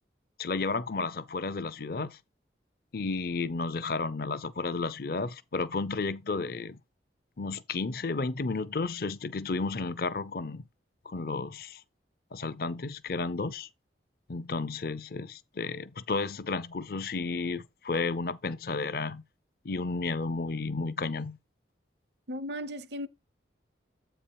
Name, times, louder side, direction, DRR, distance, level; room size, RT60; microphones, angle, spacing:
voice 1, 0.4-2.2 2.9-6.8 7.4-10.7 11.1-11.8 12.3-13.7 14.3-19.2 19.6-21.4, left 3 dB, 50° left, 0.5 m, -32 dB
voice 2, 22.3-23.1, equal, 65° right, 0.8 m, -36 dB
8.2 x 4.5 x 4.6 m
head